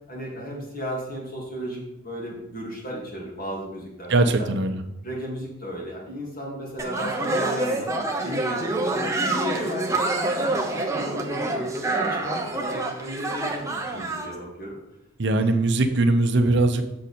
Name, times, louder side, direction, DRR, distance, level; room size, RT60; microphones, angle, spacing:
voice 1, 0.1-4.1 4.4-4.5 5.0-7.9 8.2-11.5 11.9-14.7, equal, 40° left, -3 dB, 2.4 m, -34 dB
voice 2, 4.1-4.8 15.2-16.8, right 2 dB, 55° right, 7 dB, 0.7 m, -20 dB
sound 1, 6.8-14.3, right 2 dB, 15° right, 0.7 m, -27 dB
6.8 x 6.4 x 4.3 m, 0.90 s
head